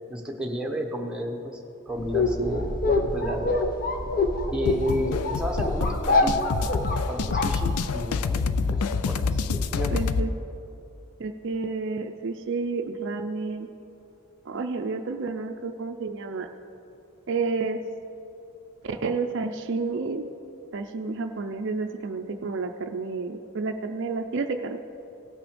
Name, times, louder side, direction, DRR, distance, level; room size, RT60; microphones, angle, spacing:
voice 1, 0.1-2.7 3.1-3.7 4.5-6.5 6.9-10.0, equal, 5° right, 0 dB, 0.8 m, -32 dB
sound 1, 2.0-8.2, left 2 dB, 40° left, 0.7 m, -26 dB
sound 2, 4.7-10.3, left 4 dB, 90° left, 0.4 m, -27 dB
voice 2, 9.9-10.3 11.2-13.7 14.5-16.5 17.3-17.8 18.8-20.3 20.7-24.8, right 4 dB, 55° right, 6 dB, 0.5 m, -30 dB
17.0 x 6.0 x 5.1 m, 2.7 s
head